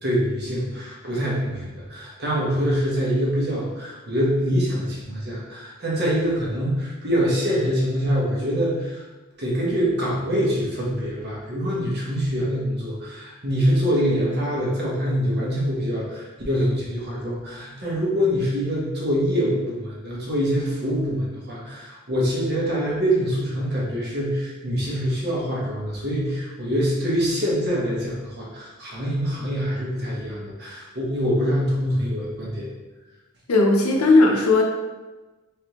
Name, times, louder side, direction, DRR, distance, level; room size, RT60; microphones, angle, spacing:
voice 1, 0.0-9.0 9.4-32.7, equal, 50° right, -5 dB, 1.1 m, -24 dB
voice 2, 33.5-34.6, left 2 dB, 85° left, 1 dB, 0.7 m, -16 dB
3.4 x 3.3 x 3.0 m, 1.2 s
head